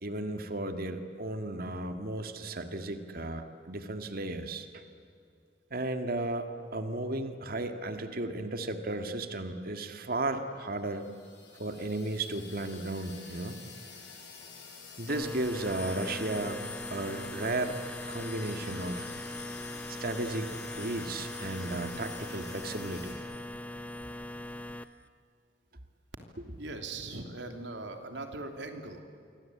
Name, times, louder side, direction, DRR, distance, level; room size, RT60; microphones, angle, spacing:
voice 1, 0.0-4.8 5.7-11.1 11.5-13.6 15.0-16.6 16.9-17.8 18.1-19.1 20.0-23.2, right 2 dB, 55° right, 7 dB, 1.9 m, -34 dB
sound 1, 10.7-23.1, left 5 dB, 70° left, 7.9 m, -49 dB
sound 2, 15.1-24.8, left 1 dB, 10° left, 0.8 m, -40 dB
voice 2, 26.5-29.0, right 2 dB, 80° right, 5 dB, 3.1 m, -40 dB
28.0 x 24.5 x 8.6 m, 2.4 s
head